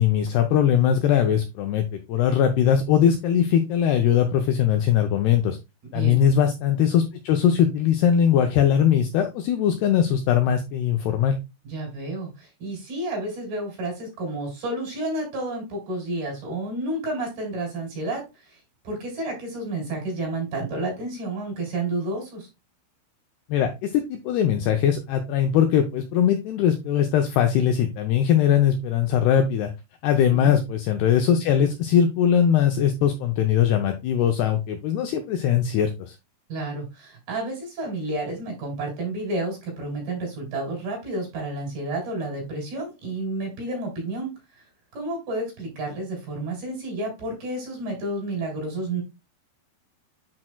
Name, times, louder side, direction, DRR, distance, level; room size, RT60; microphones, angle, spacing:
voice 1, 0.0-1.8 2.1-5.6 5.9-11.4 23.5-29.7 30.0-36.2, left 9 dB, 80° left, 6 dB, 2.4 m, -21 dB
voice 2, 5.9-6.2 11.6-18.6 18.8-22.5 30.3-30.5 36.5-44.3 44.9-49.0, right 2 dB, 55° right, 0 dB, 5.1 m, -30 dB
8.7 x 6.2 x 2.2 m, 0.24 s
omnidirectional pair, 5.4 m